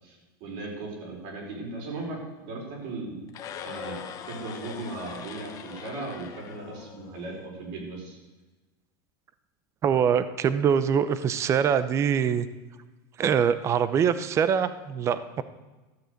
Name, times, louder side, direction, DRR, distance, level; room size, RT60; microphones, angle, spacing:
voice 1, 0.0-3.2 3.6-8.2, right 2 dB, 55° right, -2 dB, 5.1 m, -37 dB
sound 1, 3.3-7.5, left 8 dB, 30° left, 1.1 m, -42 dB
voice 2, 9.8-12.5 13.2-15.4, right 7 dB, 25° right, 14 dB, 0.6 m, -24 dB
13.5 x 7.6 x 6.6 m, 1.2 s
supercardioid pair, 140°, 11 cm